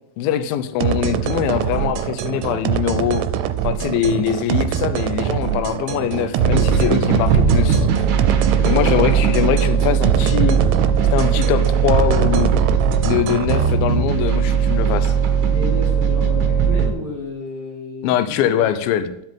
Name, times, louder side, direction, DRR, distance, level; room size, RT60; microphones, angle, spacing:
voice 1, 0.2-3.2 3.6-7.9 8.6-10.6 11.0-12.5 13.0-15.1 18.0-19.1, left 10 dB, 75° left, 11 dB, 2.3 m, -22 dB
sound 1, 0.8-13.7, right 10 dB, 80° right, 2.6 m, -24 dB
sound 2, 6.4-16.9, right 6 dB, 65° right, 2.1 m, -18 dB
voice 2, 8.6-8.9 15.5-18.6, left 2 dB, 45° left, -7 dB, 6.2 m, -32 dB
12.5 x 7.7 x 3.7 m, 0.82 s
omnidirectional pair, 4.8 m